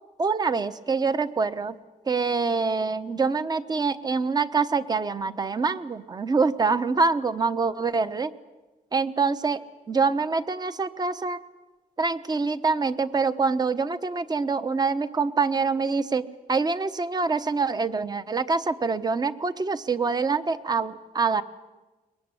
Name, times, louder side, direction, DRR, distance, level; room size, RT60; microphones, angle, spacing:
voice 1, 0.2-1.8 2.1-8.3 8.9-11.4 12.0-21.4, right 4 dB, 25° right, 12 dB, 1.0 m, -25 dB
23.0 x 20.0 x 9.9 m, 1.2 s
wide cardioid pair, 135°, 15 cm